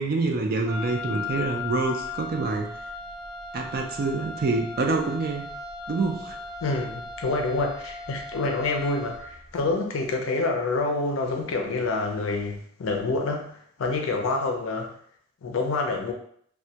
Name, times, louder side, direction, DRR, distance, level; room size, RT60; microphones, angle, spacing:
voice 1, 0.0-2.7 3.5-5.5 5.9-6.4, right 3 dB, 50° right, 3 dB, 0.4 m, -26 dB
Wind instrument woodwind instrument, 0.6-9.4, left 3 dB, 15° left, 0.5 m, -37 dB
voice 2, 6.6-14.9 15.4-16.1, left 3 dB, 70° left, 2 dB, 0.5 m, -27 dB
2.2 x 2.1 x 2.7 m, 0.64 s
head